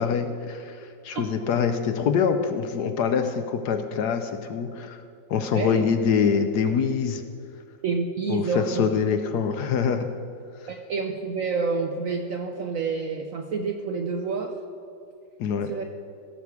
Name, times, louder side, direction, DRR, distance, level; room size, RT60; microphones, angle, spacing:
voice 1, 0.0-5.0 5.3-7.2 8.3-10.1 15.4-15.7, left 6 dB, 70° left, 8 dB, 1.1 m, -25 dB
voice 2, 5.5-5.9 7.8-8.9 10.7-14.5 15.7-15.8, right 4 dB, 65° right, 4 dB, 0.8 m, -28 dB
16.5 x 7.0 x 4.7 m, 2.4 s
omnidirectional pair, 2.1 m